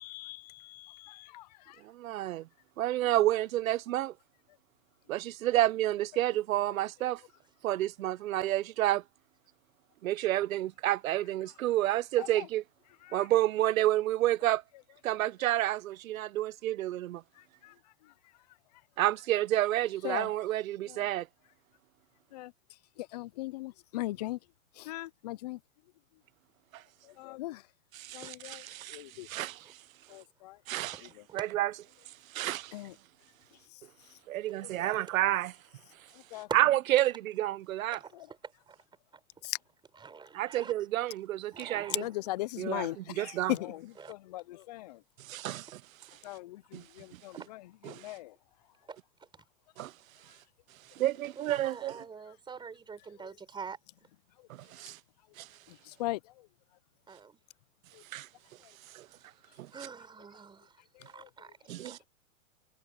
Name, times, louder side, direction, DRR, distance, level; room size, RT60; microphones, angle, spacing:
voice 1, 0.0-1.4 13.1-13.2 20.0-20.3 22.3-22.5 23.1-24.4 24.8-25.6 27.2-27.6 28.1-28.6 28.9-29.3 30.1-30.6 32.7-32.9 34.8-34.9 36.3-36.5 39.4-39.6 41.9-43.8 44.1-45.0 46.2-47.3 48.0-48.3 56.0-56.2, left 18 dB, 30° left, 0.4 m, -37 dB
voice 2, 1.8-2.5 2.8-4.1 5.1-7.2 7.6-9.0 10.0-12.6 13.1-14.6 15.0-17.2 19.0-21.3 26.7-26.8 27.9-29.8 30.7-31.0 31.3-31.7 32.3-32.8 34.3-35.5 36.5-38.0 40.3-42.1 42.6-43.6 45.2-45.8 46.7-46.8 47.1-47.2 47.8-48.1 49.8-49.9 50.9-51.9 54.5-55.0 55.4-55.5 58.1-58.3 58.9-59.1 59.6-59.7 61.7-62.0, right 14 dB, 75° right, 0.7 m, -30 dB
voice 3, 30.7-31.0 31.4-31.5 36.5-36.6 37.9-38.1 38.4-38.8 39.1-39.2 39.9-40.7 41.5-42.3 44.0-44.2 47.3-47.5 47.8-47.9 48.9-49.0 51.4-53.8 57.1-57.4 59.2-59.5 59.7-61.6 61.8-62.0, right 5 dB, 10° right, 4.1 m, -45 dB
hypercardioid pair, 145°, 41 cm